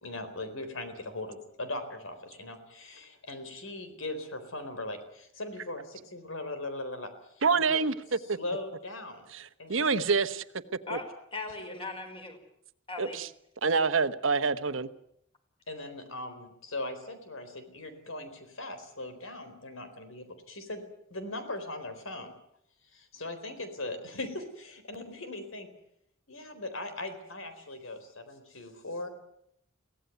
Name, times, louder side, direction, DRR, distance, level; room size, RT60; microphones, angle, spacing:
voice 1, 0.0-7.1 7.5-7.8 8.4-9.3 9.6-10.0 11.7-11.8 15.7-20.8 21.1-22.3 22.9-25.7 26.3-29.1, left 2 dB, 85° left, 9 dB, 4.2 m, -39 dB
voice 2, 7.4-7.9 8.3-8.4 9.3-10.4 10.9-11.0 13.0-13.3 13.6-14.9, right 4 dB, 75° right, 11 dB, 1.1 m, -26 dB
voice 3, 11.3-12.4 12.9-13.2, left 3 dB, 25° left, 5 dB, 4.7 m, -38 dB
23.5 x 17.0 x 9.4 m, 0.73 s
head